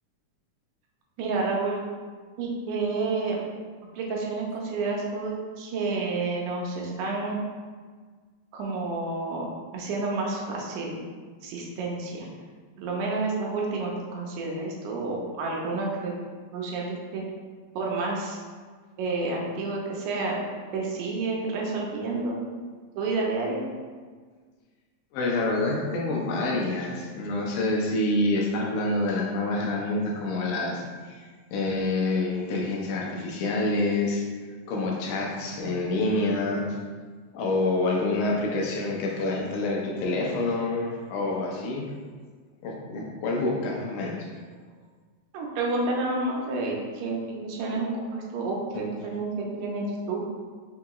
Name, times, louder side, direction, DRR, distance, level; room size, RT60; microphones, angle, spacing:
voice 1, 1.2-1.8 2.4-3.4 3.9-7.4 8.5-9.5 9.7-11.0 11.4-12.3 12.8-16.1 16.5-17.2 17.7-18.4 19.0-20.4 20.7-22.4 23.0-23.6 45.3-50.2, right 3 dB, 85° right, -2 dB, 2.1 m, -29 dB
voice 2, 25.1-31.2 31.5-34.2 34.7-36.6 37.3-41.8 42.6-44.3 47.7-47.8 48.7-48.9, left 2 dB, 85° left, -1 dB, 2.2 m, -27 dB
5.5 x 2.8 x 2.3 m, 1.5 s
omnidirectional pair, 3.5 m